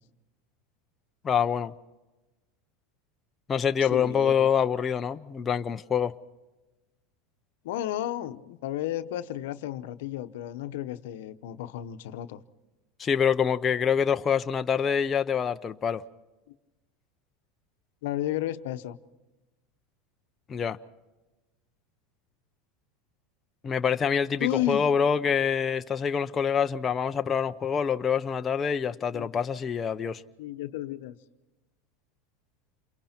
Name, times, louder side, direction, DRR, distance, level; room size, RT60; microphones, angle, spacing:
voice 1, 1.2-1.7 3.5-6.1 13.0-16.0 20.5-20.8 23.6-30.2, left 7 dB, 25° left, 0.7 m, -26 dB
voice 2, 3.8-4.4 7.6-12.4 18.0-19.0 24.4-24.9 29.1-29.3 30.4-31.1, left 13 dB, 75° left, 0.9 m, -32 dB
28.5 x 22.5 x 4.4 m
supercardioid pair, 115°, 0 cm